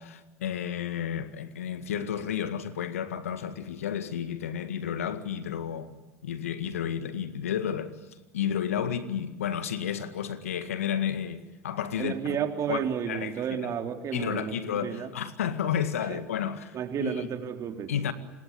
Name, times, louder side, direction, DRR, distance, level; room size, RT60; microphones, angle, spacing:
voice 1, 0.0-6.0 6.2-8.0 8.3-12.4 12.7-12.8 13.1-13.7 14.1-17.3 17.9-18.1, left 9 dB, 85° left, 1.9 m, -32 dB
voice 2, 12.0-15.1 16.1-17.9, right 8 dB, 45° right, 3.6 m, -32 dB
26.0 x 21.5 x 9.5 m
hypercardioid pair, 75°, 7 cm